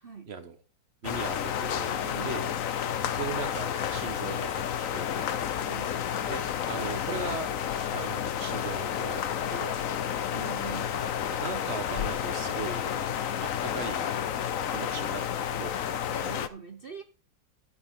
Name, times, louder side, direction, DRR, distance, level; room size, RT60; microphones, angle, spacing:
voice 1, 0.0-0.3 2.0-2.4 5.6-6.0 10.3-11.0 16.1-17.0, right 6 dB, 60° right, 0.6 m, -43 dB
sound 1, 1.0-16.5, left 9 dB, 60° left, 0.9 m, -31 dB
voice 2, 1.0-2.5 3.1-5.3 6.3-7.5 7.9-9.2 9.5-10.0 11.3-12.9 13.4-14.1 14.7-16.0, right 5 dB, 40° right, 1.3 m, -38 dB
12.5 x 9.0 x 3.7 m
omnidirectional pair, 2.0 m